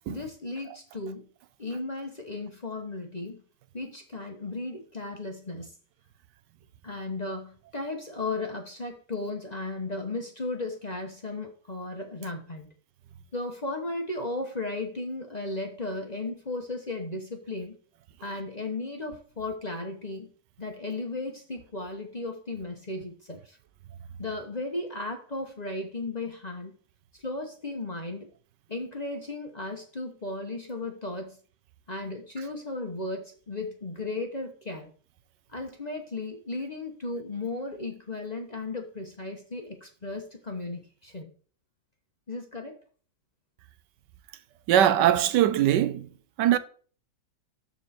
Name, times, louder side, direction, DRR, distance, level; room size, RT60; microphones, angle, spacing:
voice 1, 0.1-1.3 1.6-3.4 3.7-5.7 6.8-12.7 13.3-17.8 18.2-20.3 20.6-23.6 24.2-26.8 27.2-28.3 28.7-31.4 31.9-34.9 35.5-41.3 42.3-42.8, left 2 dB, 30° left, 1.0 m, -35 dB
voice 2, 44.7-46.1 46.4-46.6, right 11 dB, 80° right, 1.2 m, -21 dB
12.5 x 4.3 x 4.3 m
omnidirectional pair, 1.9 m